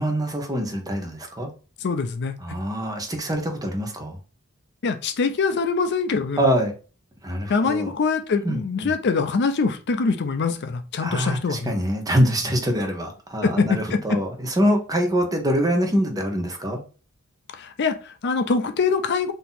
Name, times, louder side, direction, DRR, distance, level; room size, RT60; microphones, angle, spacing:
voice 1, 0.0-1.5 2.4-4.2 6.4-6.7 7.2-7.9 8.4-8.9 11.0-16.8, equal, 20° right, 0.9 m, -24 dB
voice 2, 1.8-2.3 4.8-6.4 7.5-11.7 13.4-14.2 17.5-19.3, left 4 dB, 55° left, 0.5 m, -24 dB
3.9 x 2.8 x 3.9 m
head